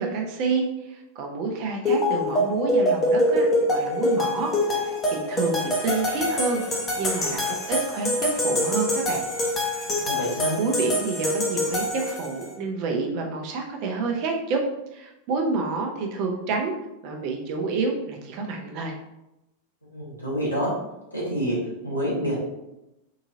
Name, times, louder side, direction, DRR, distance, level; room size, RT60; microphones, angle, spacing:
voice 1, 0.0-9.2 10.6-14.6 14.9-16.7 17.0-18.9, right 4 dB, 45° right, 2 dB, 0.6 m, -28 dB
sound 1, 1.9-12.5, left 1 dB, 20° left, 0.8 m, -25 dB
voice 2, 10.0-10.6 19.9-20.7 21.1-21.6 21.8-22.3, equal, 85° left, -7 dB, 1.4 m, -27 dB
3.8 x 2.7 x 2.6 m, 0.92 s
figure-of-eight pair, 90°, 0 cm